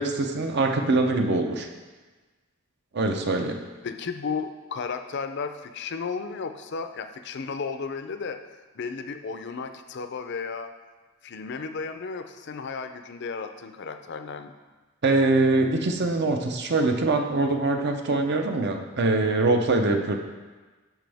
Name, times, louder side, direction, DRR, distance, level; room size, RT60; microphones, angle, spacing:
voice 1, 0.0-1.7 2.9-3.6 15.0-20.2, right 2 dB, 50° right, 4 dB, 0.7 m, -23 dB
voice 2, 3.8-8.4 8.7-10.7 11.2-14.5, left 5 dB, 55° left, 8 dB, 0.5 m, -34 dB
9.0 x 6.1 x 3.5 m, 1.3 s
head